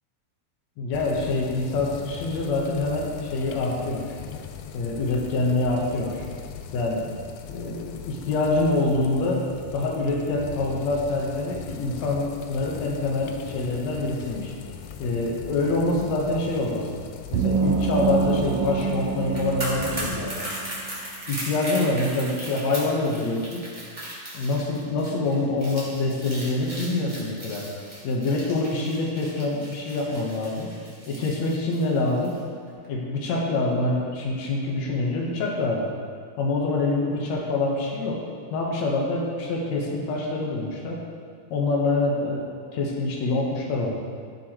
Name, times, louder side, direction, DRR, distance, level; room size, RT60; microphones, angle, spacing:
voice 1, 0.8-4.1 4.7-6.2 6.7-7.1 7.5-9.4 9.7-14.5 15.0-16.9 17.3-20.3 21.3-23.7 24.3-27.7 28.0-30.7 31.1-32.4 32.9-35.9 36.4-38.2 38.5-41.0 41.5-42.4 42.7-43.9, left 2 dB, 70° left, -2 dB, 2.5 m, -25 dB
sound 1, 0.9-20.3, left 7 dB, 85° left, 2.1 m, -40 dB
sound 2, 17.3-20.9, right 5 dB, 80° right, 1.9 m, -26 dB
sound 3, 19.2-32.4 32.7-32.8, equal, 10° right, 2.4 m, -37 dB
15.0 x 6.9 x 3.2 m, 2.2 s
omnidirectional pair, 3.4 m